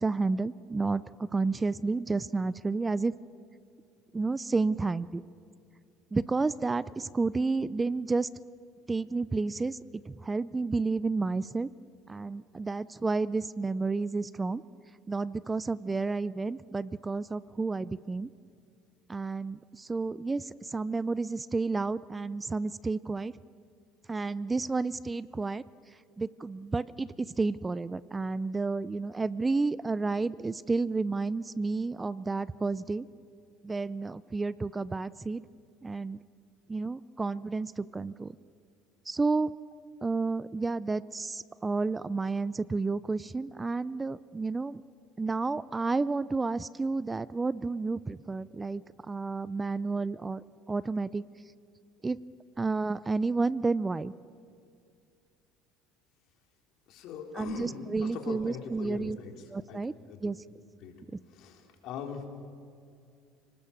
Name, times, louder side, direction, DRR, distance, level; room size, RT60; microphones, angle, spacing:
voice 1, 0.0-3.1 4.1-5.2 6.1-8.3 8.9-9.8 10.1-11.7 12.1-14.6 15.1-18.3 19.1-23.3 24.1-25.6 26.2-33.1 33.6-35.4 35.8-36.2 36.7-38.4 39.1-39.5 40.0-44.8 45.2-51.2 52.0-52.2 52.6-54.1 57.3-59.2 59.5-59.9 60.2-60.4, right 3 dB, 20° right, 19 dB, 0.5 m, -31 dB
voice 2, 56.9-59.3 59.7-59.8 60.1-60.3 60.8-60.9 61.3-62.3, left 5 dB, 65° left, 3 dB, 3.7 m, -41 dB
29.5 x 19.5 x 7.2 m, 2.4 s
supercardioid pair, 95°, 0 cm